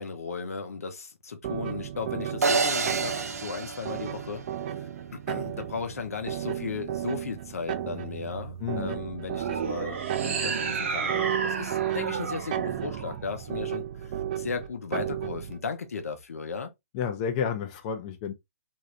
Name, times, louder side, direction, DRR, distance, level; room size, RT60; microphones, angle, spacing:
voice 1, 0.0-4.4 4.8-4.9 5.3-16.7, left 5 dB, 75° left, 0.7 m, -36 dB
sound 1, 1.4-15.6, right 11 dB, 35° right, 0.4 m, -34 dB
sound 2, 2.4-4.8, right 4 dB, 85° right, 0.6 m, -28 dB
voice 2, 8.6-9.0 16.9-18.3, left 7 dB, 30° left, 0.5 m, -31 dB
sound 3, 9.3-13.7, right 5 dB, 50° right, 0.8 m, -32 dB
3.2 x 2.6 x 2.5 m
hypercardioid pair, 150°, 8 cm